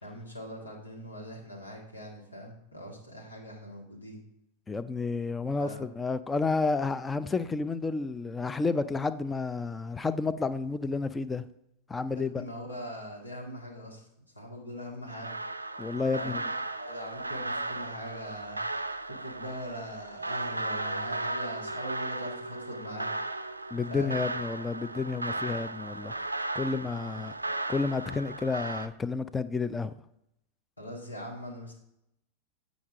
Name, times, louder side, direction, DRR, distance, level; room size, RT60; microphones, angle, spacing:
voice 1, 0.0-4.2 5.6-5.8 12.2-14.0 14.4-15.3 16.1-18.6 19.1-23.1 23.9-24.2 27.1-27.3 30.8-31.7, equal, 80° left, 1.8 m, -41 dB
voice 2, 4.7-11.5 11.9-12.4 15.8-16.5 23.7-26.1 26.5-27.3 27.7-29.9, left 4 dB, 15° left, 0.4 m, -31 dB
sound 1, 15.1-28.9, right 2 dB, 85° right, 0.4 m, -36 dB
8.6 x 5.1 x 3.6 m
figure-of-eight pair, 90°, 0 cm